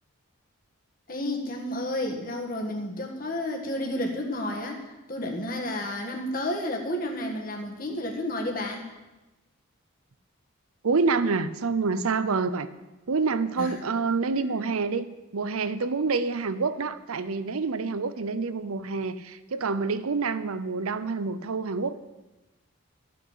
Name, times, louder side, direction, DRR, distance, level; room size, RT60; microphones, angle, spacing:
voice 1, 1.1-8.9 13.6-13.7 14.3-14.6, left 1 dB, 40° left, 1 dB, 1.6 m, -31 dB
voice 2, 10.8-12.7 13.1-15.1 15.3-22.0, right 4 dB, 90° right, 13 dB, 0.7 m, -27 dB
13.5 x 6.0 x 8.2 m, 1.1 s
head